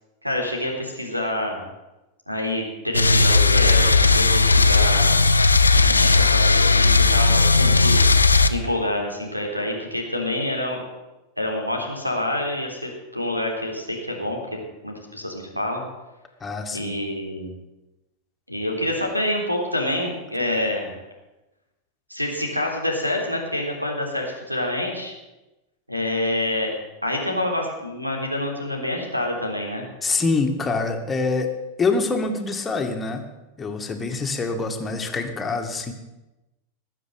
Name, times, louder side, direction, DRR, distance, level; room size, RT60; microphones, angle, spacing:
voice 1, 0.2-1.6 2.3-5.3 5.7-8.1 8.5-10.8 11.4-14.4 14.8-15.8 16.7-17.5 18.5-20.9 22.1-25.1 25.9-26.7 27.0-29.9, left 1 dB, 90° right, 1 dB, 3.7 m, -27 dB
sound 1, 2.9-8.5, left 3 dB, 80° left, 0.8 m, -16 dB
voice 2, 16.4-17.0 30.0-31.5 31.8-33.3 33.6-35.9, left 3 dB, 15° left, 4 dB, 2.1 m, -25 dB
20.0 x 7.6 x 9.0 m, 1.0 s
figure-of-eight pair, 90°, 0 cm